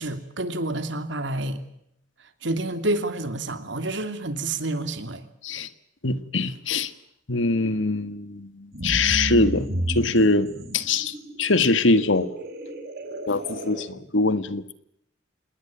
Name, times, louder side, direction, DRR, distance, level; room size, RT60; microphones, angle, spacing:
voice 1, 0.0-1.6 2.4-5.2, right 2 dB, 70° right, 9 dB, 2.9 m, -28 dB
voice 2, 6.0-6.9 7.3-12.3 13.3-14.7, left 3 dB, 80° left, 13 dB, 1.7 m, -23 dB
sound 1, 8.7-13.8, right 1 dB, 55° right, 5.0 m, -32 dB
27.5 x 20.5 x 8.8 m, 0.75 s
head